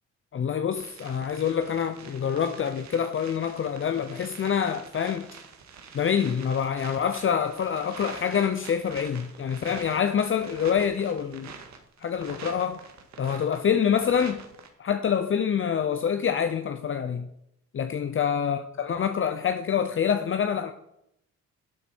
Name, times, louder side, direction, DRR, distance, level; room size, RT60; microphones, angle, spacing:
voice 1, 0.3-5.3 5.9-11.5 12.0-12.8 13.2-14.4 14.8-17.3 17.7-20.7, left 7 dB, 45° left, 0.8 m, -26 dB
sound 1, 0.8-14.7, right 6 dB, 65° right, 2.1 m, -45 dB
12.0 x 8.2 x 4.6 m
cardioid pair, 90°, 30 cm